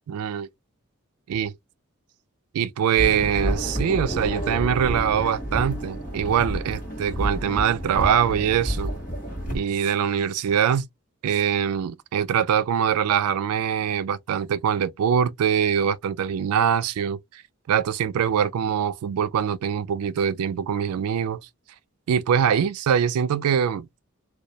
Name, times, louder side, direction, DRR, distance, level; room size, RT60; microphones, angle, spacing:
voice 1, 0.1-0.5 1.3-1.5 2.5-8.9 9.5-10.8 11.2-17.4 17.7-21.4 22.1-24.0, right 8 dB, 80° right, 0.3 m, -23 dB
sound 1, 3.0-9.6, equal, 40° left, 1.0 m, -29 dB
2.2 x 2.0 x 2.7 m
head